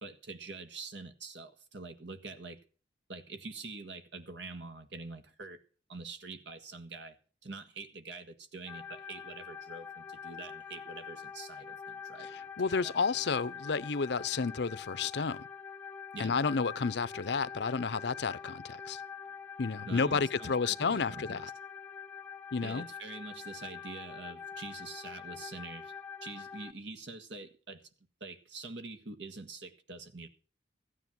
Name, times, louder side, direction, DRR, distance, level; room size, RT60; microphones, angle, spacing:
voice 1, 0.0-2.6 3.1-5.6 5.9-7.2 7.4-12.3 12.8-13.0 16.1-16.4 19.9-21.4 22.6-25.9 26.2-27.8 28.2-30.3, right 3 dB, 70° right, 1.6 m, -45 dB
sound 1, 8.7-26.7, left 6 dB, 10° left, 0.7 m, -45 dB
voice 2, 12.2-15.4 16.2-19.0 19.6-21.5 22.5-22.9, left 5 dB, 65° left, 0.6 m, -31 dB
15.5 x 9.4 x 6.1 m
head